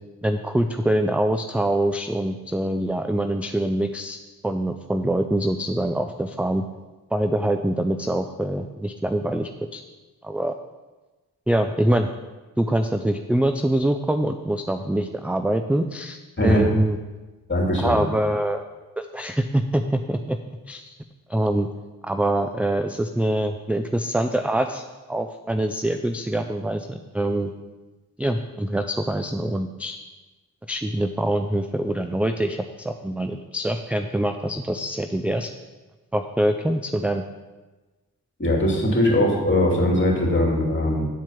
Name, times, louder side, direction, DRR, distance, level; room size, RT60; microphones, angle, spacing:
voice 1, 0.2-4.2 4.4-6.6 7.1-9.8 10.2-10.5 11.5-12.1 12.6-17.0 17.8-18.6 19.0-20.4 20.7-20.9 21.3-21.7 22.0-27.5 28.2-30.0 30.7-35.5 36.1-37.2, right 1 dB, 5° right, 7 dB, 0.4 m, -24 dB
voice 2, 16.4-16.7 17.5-18.0 38.4-41.1, left 1 dB, 30° left, -1 dB, 2.8 m, -20 dB
9.4 x 4.5 x 5.8 m, 1.2 s
cardioid pair, 55°, 38 cm